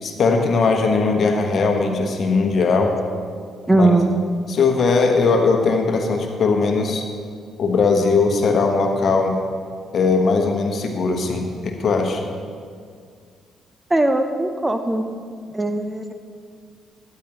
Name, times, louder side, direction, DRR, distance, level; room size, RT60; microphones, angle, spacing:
voice 1, 0.0-2.9 3.7-3.9 4.5-7.0 7.6-9.4 9.9-12.2, left 4 dB, 50° left, 4 dB, 1.2 m, -19 dB
voice 2, 3.7-4.2 13.9-15.1 15.5-16.1, right 2 dB, 15° right, 7 dB, 0.7 m, -19 dB
13.0 x 9.6 x 3.0 m, 2.1 s
hypercardioid pair, 45°, 0 cm